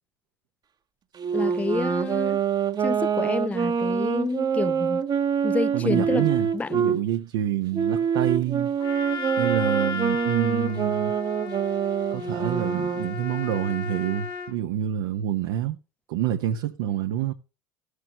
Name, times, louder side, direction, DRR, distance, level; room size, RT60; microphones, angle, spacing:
Wind instrument woodwind instrument, 1.2-7.0 7.7-13.1, right 7 dB, 35° right, 1.2 m, -25 dB
voice 1, 1.3-2.4 2.8-5.0 5.4-6.3 6.5-7.0, left 4 dB, 10° left, 0.4 m, -28 dB
voice 2, 5.7-8.7 9.4-11.1 12.1-15.8 16.1-17.3, right 11 dB, 65° right, 1.0 m, -27 dB
Trumpet, 8.8-14.6, left 5 dB, 40° left, 2.2 m, -35 dB
15.0 x 6.5 x 3.1 m
hypercardioid pair, 70°, 13 cm